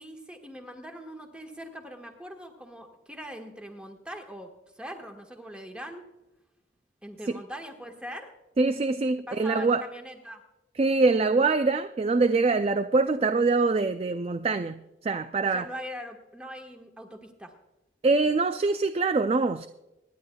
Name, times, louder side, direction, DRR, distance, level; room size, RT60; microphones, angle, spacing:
voice 1, 0.0-4.5 4.8-6.1 7.0-8.3 9.3-10.4 15.4-17.5, equal, 5° right, 3 dB, 1.4 m, -41 dB
voice 2, 8.6-9.8 10.8-15.7 18.0-19.7, right 3 dB, 35° right, 10 dB, 0.3 m, -24 dB
25.5 x 10.5 x 2.3 m, 0.99 s
head